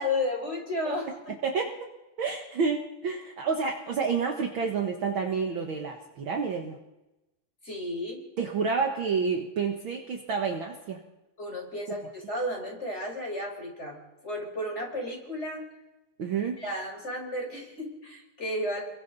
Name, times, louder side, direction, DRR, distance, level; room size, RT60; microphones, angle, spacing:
voice 1, 0.0-1.3 7.6-8.2 11.4-14.0 14.2-15.6 16.6-18.8, left 1 dB, 15° left, 0 dB, 5.2 m, -33 dB
voice 2, 2.2-6.8 8.4-11.0 16.2-16.6, right 5 dB, 80° right, 2 dB, 1.1 m, -29 dB
30.0 x 22.5 x 4.1 m, 0.99 s
omnidirectional pair, 4.3 m